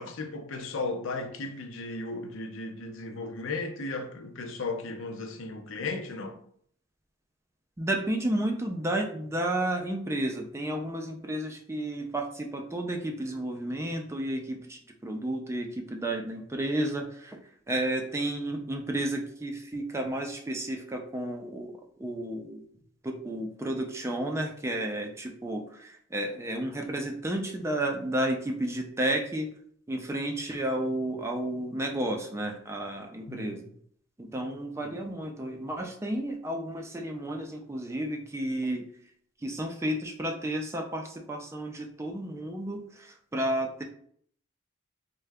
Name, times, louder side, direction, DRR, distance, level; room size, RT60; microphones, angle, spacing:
voice 1, 0.0-6.4 33.3-33.6, left 3 dB, 75° left, 0.5 m, -35 dB
voice 2, 7.8-17.4 17.7-22.6 23.0-29.5 29.9-33.6 34.2-38.9 39.4-43.8, right 1 dB, 15° right, 0.3 m, -32 dB
3.6 x 2.2 x 3.3 m
head